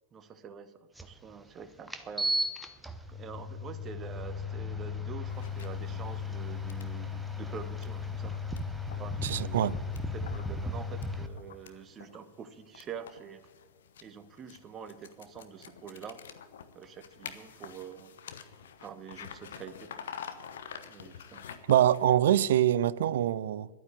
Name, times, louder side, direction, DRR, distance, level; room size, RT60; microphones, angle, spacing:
voice 1, 0.1-0.7 1.0-2.3 3.1-8.4 9.0-9.7 10.1-13.4 14.0-16.2 16.7-18.2 18.8-20.0 20.9-21.5, right 7 dB, 25° right, 1.1 m, -46 dB
sound 1, 1.0-1.1 1.9-11.3, left 2 dB, 5° right, 1.0 m, -35 dB
sound 2, 5.3-22.2, left 7 dB, 60° left, 1.0 m, -49 dB
voice 2, 9.2-9.7 21.7-23.7, right 11 dB, 60° right, 0.4 m, -24 dB
11.5 x 9.5 x 9.4 m
figure-of-eight pair, 90°, 0 cm